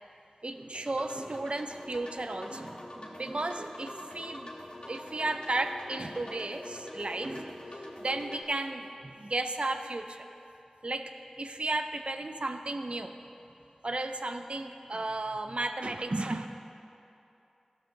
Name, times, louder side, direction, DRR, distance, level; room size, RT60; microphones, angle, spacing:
voice 1, 0.4-4.5 4.9-10.2 10.8-11.1 11.4-13.1 13.8-16.5, right 2 dB, 55° right, 7 dB, 0.4 m, -34 dB
sound 1, 0.7-8.4, left 1 dB, 45° left, 1.3 m, -45 dB
14.5 x 6.8 x 2.6 m, 2.8 s
wide cardioid pair, 50°, 2 cm